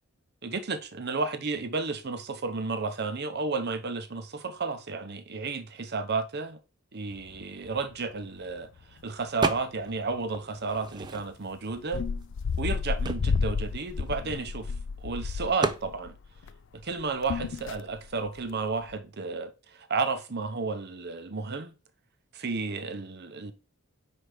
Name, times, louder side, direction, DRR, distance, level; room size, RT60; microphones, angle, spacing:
voice 1, 0.4-6.6 6.9-8.7 9.0-12.0 12.6-14.7 15.0-16.2 16.7-21.8 22.3-23.5, right 4 dB, 50° right, 0.8 m, -32 dB
sound 1, 7.1-7.8 8.1-8.2 8.5-9.1 9.6-9.8 10.1-10.2 11.0-11.2 11.8-16.6 16.8-18.5 18.8-19.0, left 5 dB, 55° left, 0.4 m, -32 dB
sound 2, 9.4-10.0 10.3-11.6 12.2-12.3 12.5-14.8 15.6-15.9, right 3 dB, 20° right, 0.4 m, -33 dB
5.0 x 4.7 x 6.2 m
head